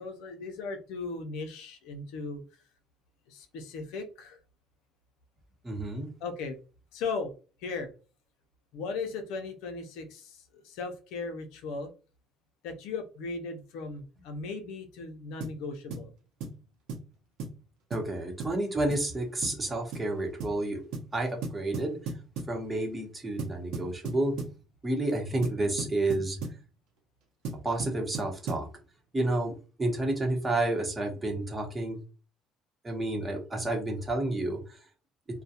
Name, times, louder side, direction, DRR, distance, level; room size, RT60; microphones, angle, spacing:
voice 1, 0.0-2.4 3.3-4.4 6.2-6.6 6.9-7.3 7.6-7.9 8.7-11.9 12.6-16.1, left 4 dB, 80° left, 6 dB, 0.5 m, -37 dB
voice 2, 5.6-6.1 17.9-20.8 21.1-22.0 22.5-24.3 24.8-26.4 27.6-28.7 29.1-32.0 32.8-34.8, right 2 dB, 20° right, 2 dB, 0.9 m, -30 dB
sound 1, 15.4-15.6 15.9-16.1 16.4-16.6 16.9-17.1 17.4-17.6 17.9-18.1 18.4-18.6 18.9-19.1 19.4-19.6 19.9-20.1 20.4-20.6 20.9-21.1 21.4-22.6 23.4-24.6 25.4-26.6 27.4-28.7, right 4 dB, 80° right, 0.8 m, -37 dB
2.3 x 2.1 x 2.7 m, 0.35 s
cardioid pair, 100°, 0 cm